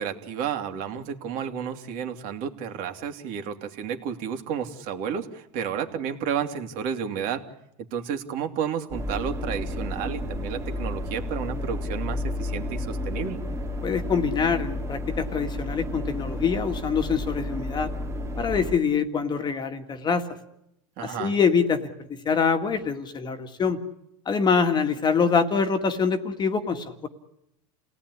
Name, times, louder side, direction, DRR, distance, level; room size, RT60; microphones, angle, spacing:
voice 1, 0.0-7.4 7.9-13.4 21.0-21.4, right 8 dB, 45° right, 5 dB, 3.0 m, -31 dB
sound 1, 8.9-18.8, left 1 dB, 15° right, 2.4 m, -32 dB
voice 2, 13.8-17.9 18.4-20.2 21.0-21.8 22.3-23.8 24.3-27.1, left 6 dB, 25° left, 7 dB, 1.9 m, -24 dB
29.5 x 18.0 x 9.9 m, 0.83 s
supercardioid pair, 130°, 19 cm